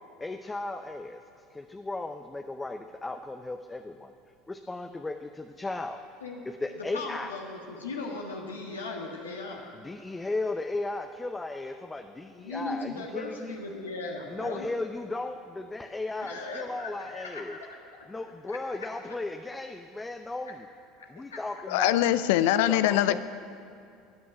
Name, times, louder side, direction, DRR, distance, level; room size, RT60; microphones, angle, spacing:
voice 1, 0.2-1.2 1.5-4.1 4.5-6.0 6.6-7.3 9.8-13.6 14.3-17.6 18.1-20.6 21.1-22.0 22.7-23.2, left 2 dB, 15° left, 6 dB, 0.7 m, -35 dB
voice 2, 6.8-9.7 12.4-14.7 16.2-18.2 18.5-19.2 20.5-20.6 21.0-21.5, left 3 dB, 85° left, -1 dB, 1.5 m, -38 dB
voice 3, 21.7-23.2, left 13 dB, 65° left, 14 dB, 0.5 m, -23 dB
13.5 x 9.5 x 9.5 m, 2.4 s
figure-of-eight pair, 70°, 0 cm